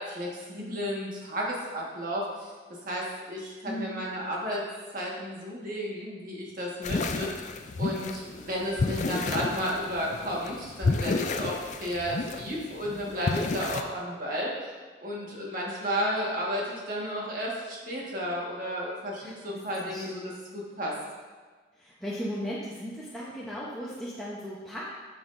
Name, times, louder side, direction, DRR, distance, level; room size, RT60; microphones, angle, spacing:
voice 1, 0.0-2.5 2.8-4.6 4.9-7.5 7.8-14.5 15.0-20.2 20.5-20.9, equal, 45° right, -4 dB, 1.5 m, -33 dB
voice 2, 3.7-4.0 19.2-20.4 21.8-24.9, equal, ahead, -7 dB, 0.7 m, -37 dB
sound 1, 6.8-13.8, left 3 dB, 40° left, 0.4 m, -31 dB
9.0 x 6.2 x 2.6 m, 1.4 s
head